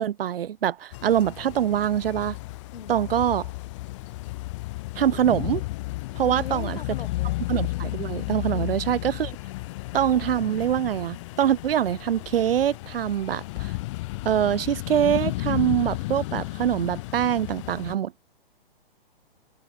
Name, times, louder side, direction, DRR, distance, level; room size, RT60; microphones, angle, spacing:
voice 1, 0.0-2.4 2.9-3.5 5.0-5.6 6.2-6.8 7.5-9.3 9.9-13.7 14.2-18.1, right 10 dB, 75° right, 0.7 m, -24 dB
sound 1, 0.9-18.0, left 21 dB, 30° left, 0.7 m, -33 dB
voice 2, 6.2-7.4 8.5-8.8, left 7 dB, 70° left, 5.5 m, -39 dB
hypercardioid pair, 135°, 29 cm